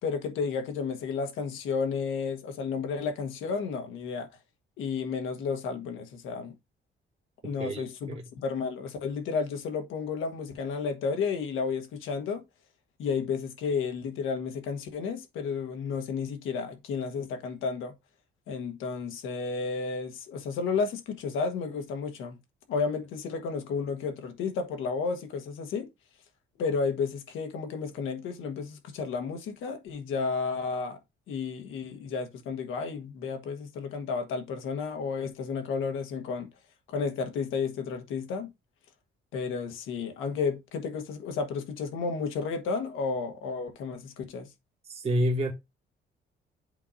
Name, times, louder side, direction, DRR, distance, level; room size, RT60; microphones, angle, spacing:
voice 1, 0.0-4.3 4.8-6.5 7.4-12.4 13.0-17.9 18.5-22.4 22.7-25.9 26.6-31.0 31.3-36.5 36.9-38.5 39.3-44.5, left 5 dB, 90° left, 1.5 m, -32 dB
voice 2, 7.6-8.2 44.9-45.5, equal, 30° right, 1.1 m, -28 dB
8.1 x 2.8 x 5.1 m
cardioid pair, 90°, 20 cm